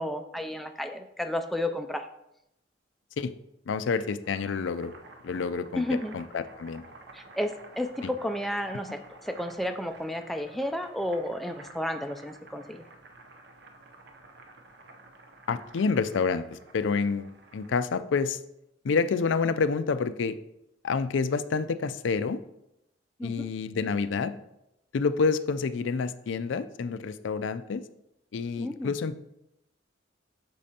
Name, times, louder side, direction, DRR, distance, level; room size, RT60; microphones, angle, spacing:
voice 1, 0.0-2.1 5.8-6.2 7.1-12.8 23.2-23.5 28.6-29.0, left 1 dB, ahead, 5 dB, 0.3 m, -32 dB
voice 2, 3.7-4.9 5.2-5.8 6.1-6.8 8.0-8.1 15.5-18.4 18.8-20.4 20.8-22.4 23.2-24.3 24.9-27.8 28.3-29.2, left 5 dB, 75° left, 12 dB, 0.4 m, -28 dB
Boiling, 4.1-17.9, right 2 dB, 60° right, 0.7 m, -51 dB
8.4 x 6.2 x 2.8 m, 0.84 s
head